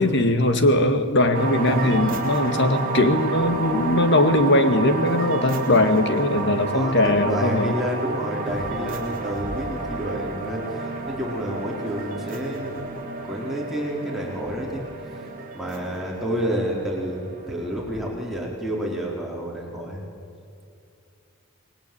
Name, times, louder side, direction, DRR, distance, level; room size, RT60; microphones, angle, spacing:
voice 1, 0.0-7.7, left 1 dB, 55° left, 8 dB, 2.1 m, -20 dB
sound 1, 1.3-18.2, right 3 dB, 40° right, 3.3 m, -30 dB
voice 2, 6.7-12.9 13.2-14.9 15.5-20.0, equal, ahead, -3 dB, 4.6 m, -29 dB
27.5 x 21.5 x 8.9 m, 2.5 s
head